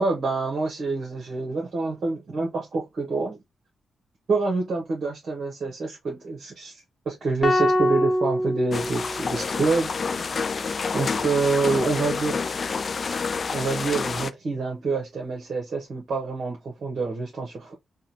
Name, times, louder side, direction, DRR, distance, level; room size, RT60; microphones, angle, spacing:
voice 1, 0.0-3.4 4.3-9.9 10.9-12.5 13.5-17.7, right 3 dB, 60° right, 1.2 m, -27 dB
sound 1, 7.4-9.8, left 1 dB, 35° left, 0.8 m, -24 dB
sound 2, 8.7-14.3, left 5 dB, 50° left, 0.3 m, -28 dB
3.6 x 2.3 x 2.8 m
cardioid pair, 60°, 0 cm